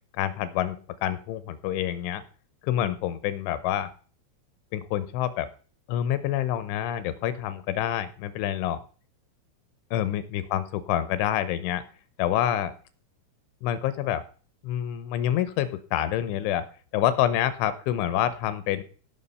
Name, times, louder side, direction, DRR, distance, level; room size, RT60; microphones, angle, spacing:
voice 1, 0.2-2.2 2.6-3.9 4.7-5.5 5.9-8.8 9.9-11.8 12.2-12.7 13.6-14.2 14.6-16.6 16.9-18.8, left 11 dB, 80° left, 13 dB, 2.9 m, -27 dB
16.5 x 5.9 x 5.5 m, 0.41 s
omnidirectional pair, 5.9 m